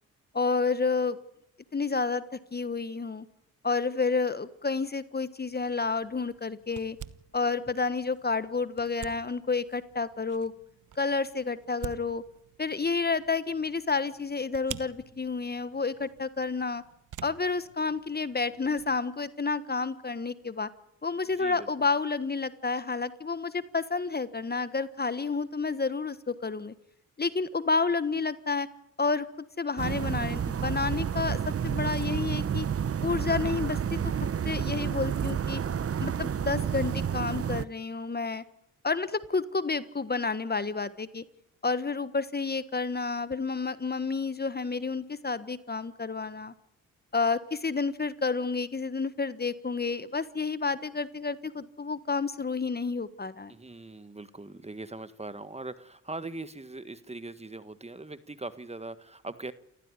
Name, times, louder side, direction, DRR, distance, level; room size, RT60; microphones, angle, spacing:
voice 1, 0.3-1.2 1.7-2.2 2.5-3.2 3.6-7.0 7.3-10.5 11.0-12.2 12.6-16.8 17.2-20.7 21.0-26.7 27.2-28.7 29.0-31.4 31.6-32.7 33.0-35.6 36.0-38.4 38.8-41.2 41.6-46.5 47.1-53.5, left 4 dB, 30° left, 14 dB, 1.4 m, -30 dB
sound 1, 5.4-19.0, right 10 dB, 60° right, 1.2 m, -49 dB
voice 2, 21.3-21.7 53.5-59.5, right 2 dB, 20° right, 13 dB, 1.6 m, -41 dB
sound 2, 29.8-37.6, right 8 dB, 45° right, 0.9 m, -30 dB
29.0 x 15.0 x 9.8 m, 0.79 s
supercardioid pair, 55°, 34 cm